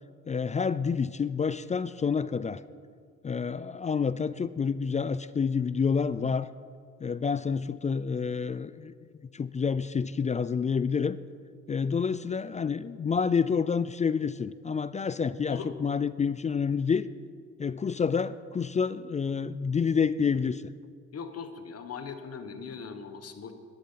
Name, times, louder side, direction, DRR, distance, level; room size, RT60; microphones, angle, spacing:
voice 1, 0.3-2.6 3.2-6.5 7.0-8.9 9.3-11.2 11.7-17.1 17.6-20.7, left 6 dB, 25° left, 16 dB, 0.3 m, -28 dB
voice 2, 21.1-23.5, left 6 dB, 55° left, 8 dB, 1.4 m, -40 dB
13.5 x 10.5 x 5.8 m, 2.1 s
cardioid pair, 90°, 30 cm